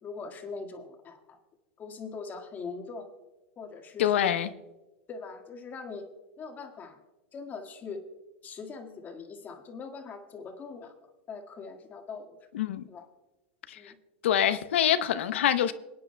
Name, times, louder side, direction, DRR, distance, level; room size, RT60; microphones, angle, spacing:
voice 1, 0.0-1.4 1.8-3.1 3.6-4.4 5.1-6.0 6.4-7.0 7.3-8.0 8.4-10.9 11.3-12.4 12.9-13.1 13.7-14.0, left 4 dB, 30° left, 1.7 m, -41 dB
voice 2, 4.0-4.5 12.5-12.9 13.7-13.8 14.2-15.7, left 10 dB, 80° left, 0.7 m, -25 dB
26.5 x 9.7 x 2.2 m
hypercardioid pair, 120°, 6 cm